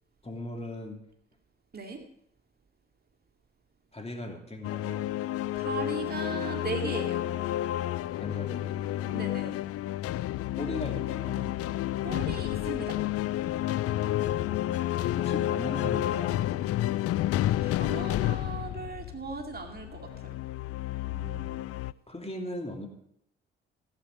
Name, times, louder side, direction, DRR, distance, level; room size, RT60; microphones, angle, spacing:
voice 1, 0.2-1.0 3.9-5.1 8.2-9.2 10.5-11.5 15.2-16.7 21.1-21.5 22.1-22.9, left 1 dB, 20° left, 3 dB, 2.9 m, -38 dB
sound 1, 4.6-21.9, left 14 dB, 50° left, 0.5 m, -30 dB
voice 2, 5.5-7.2 9.1-9.5 12.0-13.1 17.6-20.3, right 4 dB, 30° right, 3 dB, 2.3 m, -37 dB
16.5 x 8.6 x 5.4 m, 0.72 s
figure-of-eight pair, 40°, 30 cm